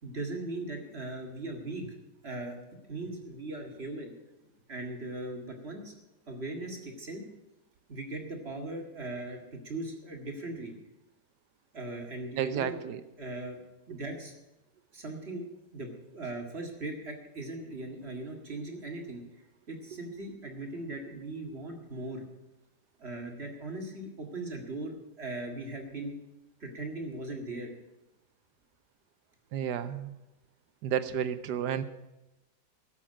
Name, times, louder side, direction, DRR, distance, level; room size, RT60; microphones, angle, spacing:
voice 1, 0.0-1.9 2.2-2.5 2.9-4.1 4.7-5.9 6.3-7.2 7.9-10.7 11.7-12.8 13.2-13.6 13.9-14.3 14.9-15.4 15.7-19.2 19.7-22.2 23.0-26.1 26.6-27.7, right 2 dB, 35° right, 2 dB, 2.1 m, -39 dB
voice 2, 12.4-13.0 29.5-30.1 30.8-31.8, right 9 dB, 70° right, 12 dB, 1.2 m, -31 dB
12.5 x 7.3 x 9.9 m, 0.98 s
omnidirectional pair, 2.0 m